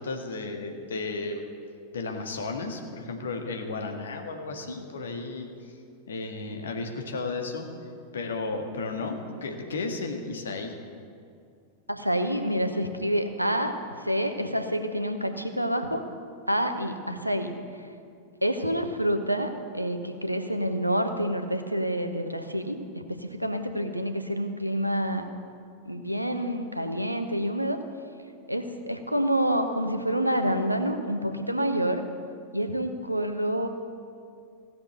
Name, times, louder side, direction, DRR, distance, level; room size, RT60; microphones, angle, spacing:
voice 1, 0.0-1.4 1.9-5.5 6.1-7.7 8.1-10.7, left 3 dB, 65° left, 4 dB, 1.8 m, -33 dB
voice 2, 11.9-16.0 16.5-17.5 18.4-25.3 25.8-27.8 28.5-32.0 32.5-33.7, equal, 90° right, 6 dB, 1.0 m, -28 dB
16.0 x 7.3 x 9.1 m, 2.3 s
figure-of-eight pair, 90°, 0 cm